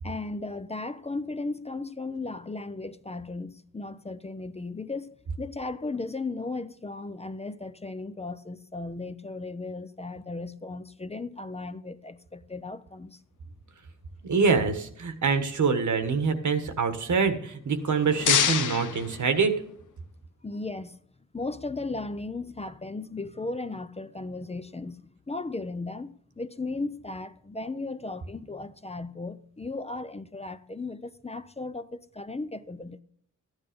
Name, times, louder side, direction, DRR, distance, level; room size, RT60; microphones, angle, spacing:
voice 1, 0.0-13.2 20.4-21.0 21.3-33.0, left 3 dB, 20° left, 0.6 m, -36 dB
voice 2, 14.2-19.5, right 5 dB, 75° right, 1.5 m, -25 dB
sound 1, 17.7-19.9, left 8 dB, 90° left, 0.9 m, -28 dB
13.5 x 9.9 x 5.2 m
wide cardioid pair, 105°, 30 cm